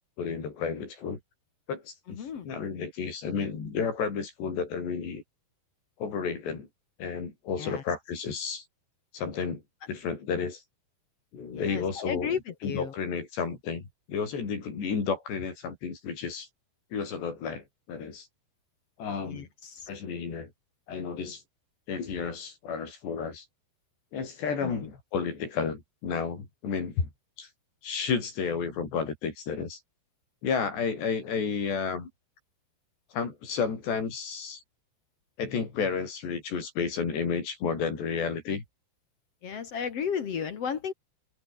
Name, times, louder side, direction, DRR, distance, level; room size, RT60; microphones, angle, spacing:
voice 1, 0.2-1.2 1.7-5.2 6.0-6.7 7.0-8.6 9.1-9.6 9.9-10.6 11.3-16.5 16.9-18.3 19.0-19.5 19.9-20.5 20.9-21.4 21.9-23.5 24.1-27.1 27.4-27.5 27.8-29.8 30.4-32.1 33.1-34.6 35.4-38.6, left 5 dB, 85° left, 7.9 m, -32 dB
voice 2, 2.1-2.5 7.6-7.8 11.5-12.9 19.3-19.9 24.6-24.7 39.4-40.9, left 7 dB, 50° left, 2.0 m, -34 dB
omnidirectional pair, 4.8 m